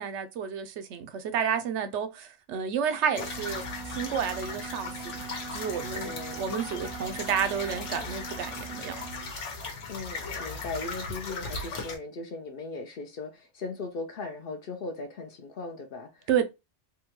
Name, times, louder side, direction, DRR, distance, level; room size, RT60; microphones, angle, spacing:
voice 1, 0.0-3.6 4.0-5.3 5.5-9.1 16.3-16.4, right 7 dB, 75° right, 0.8 m, -31 dB
sound 1, 3.1-12.0, left 3 dB, 80° left, 1.2 m, -37 dB
Wind instrument woodwind instrument, 3.1-9.3, right 8 dB, 45° right, 0.6 m, -43 dB
voice 2, 6.0-6.4 9.9-16.3, left 3 dB, 60° left, 0.7 m, -38 dB
3.6 x 2.2 x 2.9 m
omnidirectional pair, 1.2 m